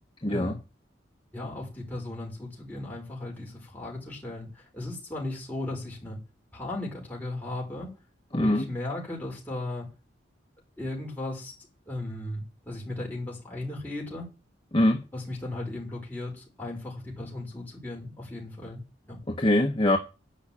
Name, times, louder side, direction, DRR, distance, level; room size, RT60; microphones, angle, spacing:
voice 1, 0.2-0.6 8.3-8.7 14.7-15.0 19.3-20.0, left 1 dB, 25° left, 1.0 m, -23 dB
voice 2, 1.3-6.2 6.5-7.9 8.3-9.9 10.8-11.5 11.9-14.3 15.1-19.2, left 2 dB, 10° left, 5.3 m, -36 dB
11.0 x 6.0 x 8.9 m
head